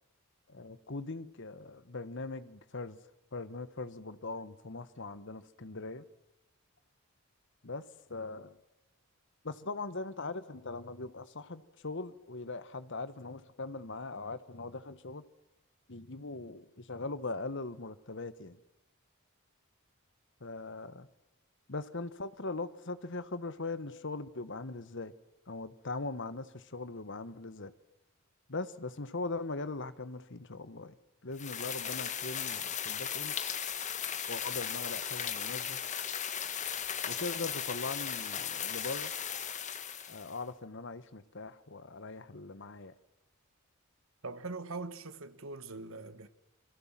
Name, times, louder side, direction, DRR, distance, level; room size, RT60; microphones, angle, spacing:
voice 1, 0.5-3.0 3.3-6.0 7.6-7.8 8.1-8.6 9.4-15.2 15.9-18.6 20.4-21.1 21.7-25.1 25.5-27.7 28.5-30.9 31.2-33.4 34.3-35.8 37.0-39.1 40.1-42.9, left 3 dB, 55° left, 1.3 m, -40 dB
sound 1, 31.4-40.4, left 8 dB, 35° left, 1.4 m, -37 dB
voice 2, 44.2-46.3, right 3 dB, 65° right, 1.5 m, -42 dB
28.0 x 22.5 x 7.5 m
head